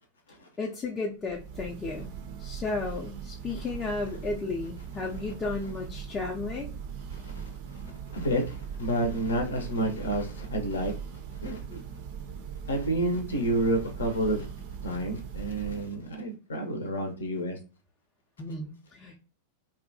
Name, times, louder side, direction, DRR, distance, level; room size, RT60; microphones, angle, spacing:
voice 1, 0.6-2.1 2.4-6.7 18.4-19.2, left 3 dB, 20° left, -2 dB, 0.5 m, -33 dB
Church bell, 1.2-16.1, right 7 dB, 50° right, 0.4 m, -40 dB
voice 2, 7.1-7.5 8.1-10.9 11.4-11.8 12.7-14.5 14.8-17.6, right 1 dB, 70° left, 3 dB, 0.6 m, -29 dB
2.8 x 2.3 x 2.5 m, 0.34 s
figure-of-eight pair, 90°, 0 cm